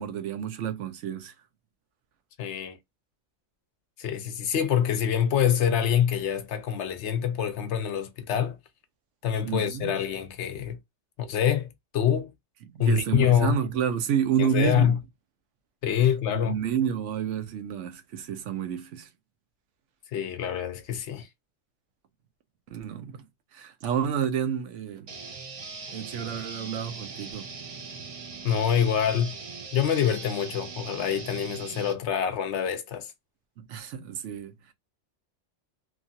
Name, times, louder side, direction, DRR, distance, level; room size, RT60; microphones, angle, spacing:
voice 1, 0.0-1.3 9.4-9.9 12.7-14.9 16.5-19.1 22.7-23.2 23.5-25.1 25.9-27.5 33.7-34.5, right 8 dB, 80° right, 1.0 m, -29 dB
voice 2, 2.4-2.8 4.0-8.6 9.2-10.8 11.2-12.3 12.8-13.6 14.4-15.0 15.8-16.5 20.1-21.3 28.4-29.3 29.7-33.1, left 9 dB, 75° left, 0.9 m, -25 dB
sound 1, 25.1-31.9, right 4 dB, 40° right, 0.5 m, -40 dB
2.9 x 2.4 x 2.7 m
omnidirectional pair, 1.2 m